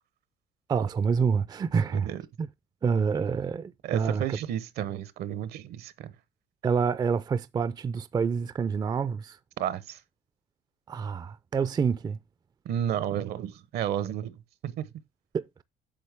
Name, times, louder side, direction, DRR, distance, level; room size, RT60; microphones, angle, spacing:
voice 1, 0.7-2.1 2.4-2.5 2.8-4.4 6.6-9.4 10.9-12.2 15.3-15.6, right 6 dB, 25° right, 0.4 m, -27 dB
voice 2, 1.9-2.2 3.8-6.1 9.6-10.0 12.6-14.3 14.6-14.8, right 10 dB, 70° right, 0.8 m, -32 dB
8.6 x 6.1 x 3.4 m
cardioid pair, 110°, 17 cm